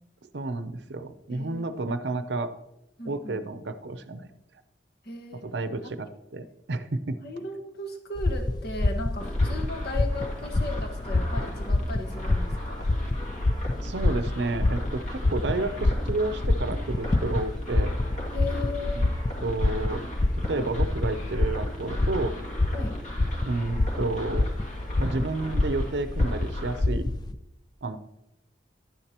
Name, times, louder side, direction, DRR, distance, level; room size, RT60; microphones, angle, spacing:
voice 1, 0.3-2.5 3.0-4.3 5.4-7.2 13.8-17.9 18.9-19.1 19.4-20.0 20.5-22.4 23.5-24.5 25.0-27.1 27.8-28.0, right 2 dB, 70° right, 12 dB, 0.7 m, -31 dB
voice 2, 1.3-1.7 3.0-3.4 5.0-5.4 7.2-12.9 18.3-19.1 22.7-23.0, left 2 dB, 60° left, 3 dB, 1.5 m, -36 dB
sound 1, 8.2-27.3, left 2 dB, 25° left, 0.3 m, -27 dB
sound 2, 9.2-26.8, equal, 40° left, 2.1 m, -41 dB
11.5 x 9.9 x 3.0 m, 0.89 s
head